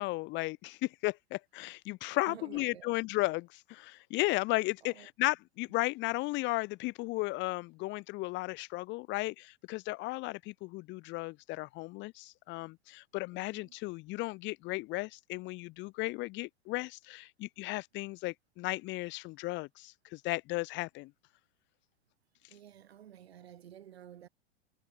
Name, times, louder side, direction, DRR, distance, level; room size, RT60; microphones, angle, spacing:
voice 1, 0.0-21.1, left 22 dB, 35° left, 0.8 m, -35 dB
voice 2, 2.1-3.0 4.8-5.1 13.3-13.8 22.5-24.3, right 10 dB, 70° right, 7.7 m, -52 dB
figure-of-eight pair, 95°, 32 cm